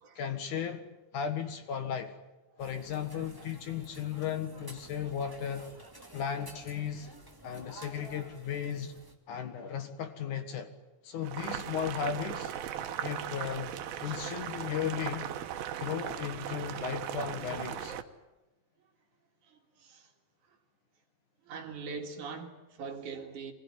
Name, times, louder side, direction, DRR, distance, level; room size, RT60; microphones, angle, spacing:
voice 1, 0.2-0.8 1.1-2.1 2.6-5.7 6.1-7.1 7.4-9.0 9.3-10.7 11.0-12.5 13.0-13.7 14.0-15.3 15.8-18.0, left 8 dB, 60° left, 2.8 m, -35 dB
sound 1, 2.6-9.1, right 1 dB, 10° right, 1.6 m, -51 dB
Boiling, 11.2-18.0, right 10 dB, 75° right, 2.9 m, -38 dB
voice 2, 14.0-14.4 17.9-18.0 19.4-20.1 21.5-23.5, right 5 dB, 60° right, 3.3 m, -43 dB
25.5 x 20.5 x 9.8 m
omnidirectional pair, 4.3 m